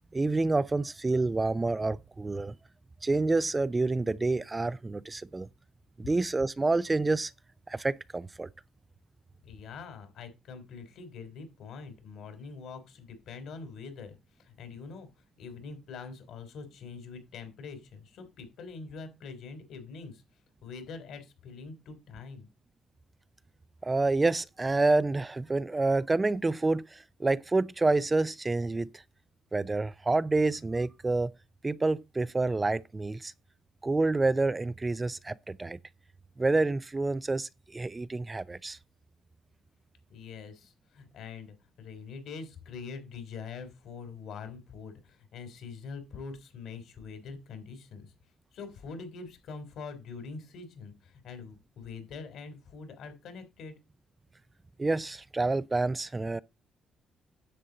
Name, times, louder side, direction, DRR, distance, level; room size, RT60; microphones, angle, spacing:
voice 1, 0.1-2.5 3.0-5.5 6.0-7.3 7.7-8.5 23.8-29.0 29.5-31.3 31.6-33.3 33.8-35.8 36.4-38.8 54.8-56.4, right 3 dB, 20° right, 0.5 m, -28 dB
voice 2, 9.4-22.5 40.1-48.1 48.5-53.8, left 5 dB, 75° left, 3.2 m, -44 dB
10.0 x 7.3 x 3.9 m
cardioid pair, 90°, 0 cm